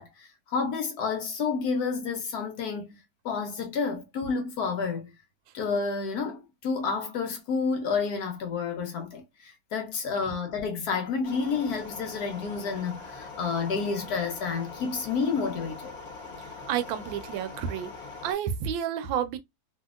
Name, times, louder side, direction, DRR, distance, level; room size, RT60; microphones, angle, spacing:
voice 1, 0.0-2.9 3.2-5.1 5.5-15.9, left 5 dB, 65° left, 1.1 m, -30 dB
sound 1, 11.2-18.3, left 4 dB, 40° left, 0.9 m, -42 dB
voice 2, 16.7-17.9 18.2-19.4, right 9 dB, 85° right, 1.3 m, -30 dB
3.1 x 2.7 x 2.3 m
omnidirectional pair, 2.0 m